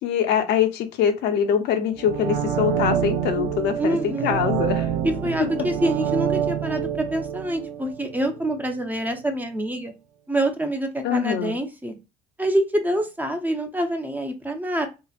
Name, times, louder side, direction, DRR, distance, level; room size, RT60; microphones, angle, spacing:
voice 1, 0.0-4.9 11.0-11.5, left 8 dB, 80° left, 0.6 m, -23 dB
sound 1, 1.9-8.8 9.1-9.2, right 9 dB, 80° right, 0.5 m, -27 dB
voice 2, 3.8-4.4 5.0-9.9 10.3-11.9 12.4-14.9, right 1 dB, 10° right, 0.5 m, -26 dB
2.8 x 2.1 x 2.4 m
cardioid pair, 110°, 17 cm